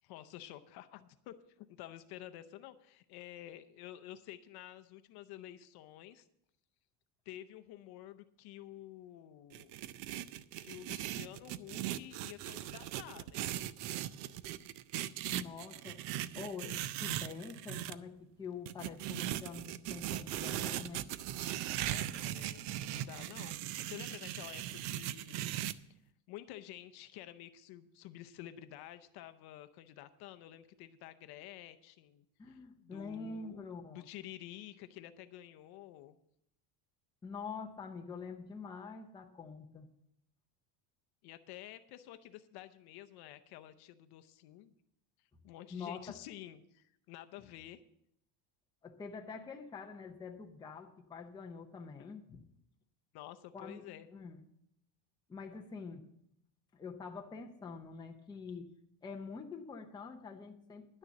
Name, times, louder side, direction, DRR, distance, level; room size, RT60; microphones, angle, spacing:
voice 1, 0.0-6.3 7.3-9.7 10.6-13.5 21.8-25.5 25.9-26.0 26.3-33.7 33.9-36.2 41.2-44.7 45.4-47.8 53.1-54.1, left 13 dB, 50° left, 10 dB, 0.6 m, -50 dB
sound 1, 9.5-17.9 18.7-25.7, right 13 dB, 60° right, 0.6 m, -39 dB
voice 2, 15.3-16.0 16.3-21.1 32.4-34.1 37.2-39.9 45.7-46.2 48.8-52.4 53.5-54.4 55.3-56.1 56.7-58.8 59.0-61.0, left 5 dB, 10° left, 2 dB, 0.6 m, -46 dB
11.0 x 6.6 x 7.1 m, 0.76 s
cardioid pair, 170°, 48 cm